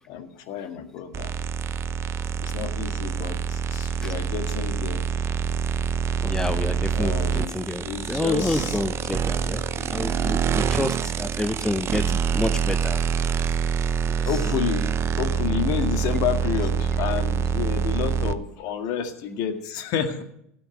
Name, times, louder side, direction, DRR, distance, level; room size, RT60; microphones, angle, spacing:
voice 1, 0.1-1.3 2.2-5.0 6.2-6.7 7.0-7.6 7.8-8.8 9.8-9.9 14.3-14.9 15.2-20.2, left 8 dB, 55° left, 7 dB, 2.0 m, -30 dB
sound 1, 1.1-18.3, right 6 dB, 35° right, 0.8 m, -26 dB
voice 2, 6.2-9.6 9.9-13.0 13.4-13.6 14.2-14.4, left 2 dB, 5° left, 11 dB, 0.7 m, -29 dB
16.0 x 6.4 x 9.2 m, 0.74 s
hypercardioid pair, 85°, 8 cm